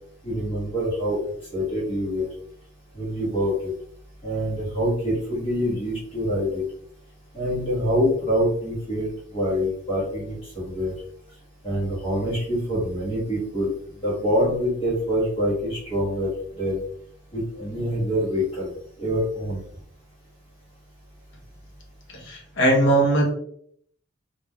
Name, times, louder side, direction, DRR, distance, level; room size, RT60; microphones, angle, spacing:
voice 1, 0.2-1.2 1.5-2.3 2.9-3.7 4.2-6.6 7.3-10.9 11.6-13.7 14.0-16.8 17.3-18.7 19.0-19.6, equal, 25° left, -7 dB, 1.2 m, -25 dB
voice 2, 22.1-23.3, right 1 dB, 65° left, 0 dB, 0.9 m, -20 dB
3.5 x 2.6 x 2.2 m, 0.64 s
head